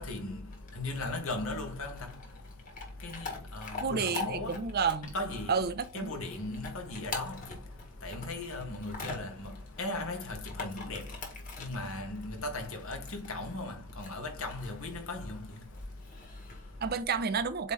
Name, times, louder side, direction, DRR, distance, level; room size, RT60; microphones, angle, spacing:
voice 1, 0.0-4.8 5.1-5.6 5.9-16.9, left 2 dB, 65° left, 1.7 m, -38 dB
Chewing mastication / Dog, 0.5-17.0, left 3 dB, 40° left, 1.8 m, -45 dB
voice 2, 3.8-5.1 5.5-6.1 16.8-17.7, right 5 dB, 45° right, 0.6 m, -30 dB
8.1 x 3.2 x 3.7 m
head